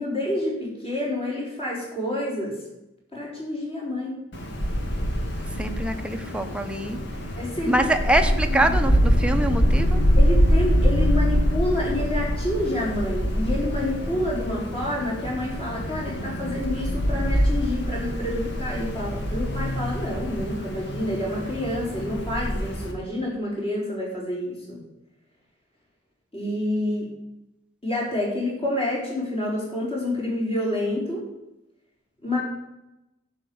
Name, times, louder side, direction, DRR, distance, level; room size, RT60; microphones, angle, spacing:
voice 1, 0.0-2.6 3.1-4.2 7.4-7.9 8.2-8.7 10.2-24.8 26.3-27.1 27.8-31.2 32.2-32.4, left 1 dB, 30° left, -4 dB, 4.5 m, -28 dB
Wind, 4.3-22.9, equal, 60° left, 1.7 m, -24 dB
voice 2, 5.6-7.0 7.6-10.0, right 1 dB, 5° right, 5 dB, 0.9 m, -24 dB
11.5 x 5.2 x 7.8 m, 0.91 s
head